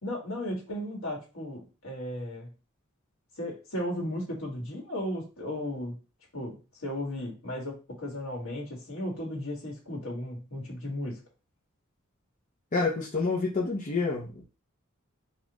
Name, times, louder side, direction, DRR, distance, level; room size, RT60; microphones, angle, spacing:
voice 1, 0.0-2.5 3.4-6.0 6.3-11.2, left 1 dB, 75° left, -2 dB, 1.7 m, -35 dB
voice 2, 12.7-14.4, left 3 dB, 35° left, -4 dB, 0.7 m, -28 dB
4.1 x 2.4 x 3.0 m, 0.31 s
head